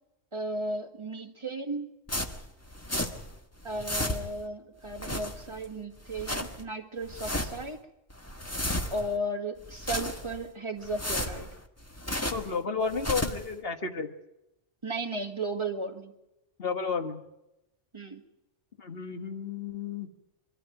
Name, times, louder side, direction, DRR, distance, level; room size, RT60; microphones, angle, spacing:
voice 1, 0.3-1.9 3.6-7.8 8.9-11.5 14.8-16.1 17.9-18.2, right 1 dB, 25° right, 4 dB, 1.8 m, -35 dB
sound 1, 2.1-3.4 3.6-4.5 4.9-5.7 6.0-6.6 7.0-7.7 8.1-9.2 9.6-10.4 10.8-12.5 12.9-13.5, left 1 dB, 15° left, 1.3 m, -33 dB
voice 2, 12.3-14.1 16.6-17.2 18.8-20.1, left 5 dB, 50° left, 7 dB, 1.7 m, -32 dB
24.0 x 13.5 x 9.1 m, 0.93 s
omnidirectional pair, 1.2 m